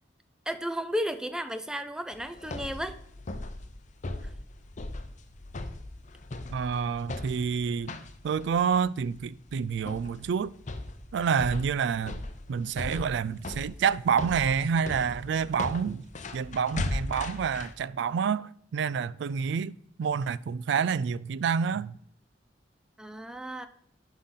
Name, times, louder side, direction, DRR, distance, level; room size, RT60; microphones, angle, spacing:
voice 1, 0.5-3.0 23.0-23.7, equal, 5° right, 0.5 m, -33 dB
sound 1, 2.1-17.7, left 2 dB, 40° left, 0.7 m, -38 dB
voice 2, 6.5-7.9 8.2-10.5 11.1-12.2 12.5-16.0 16.3-19.7 20.0-22.0, right 6 dB, 65° right, 0.3 m, -28 dB
10.0 x 5.6 x 3.8 m
head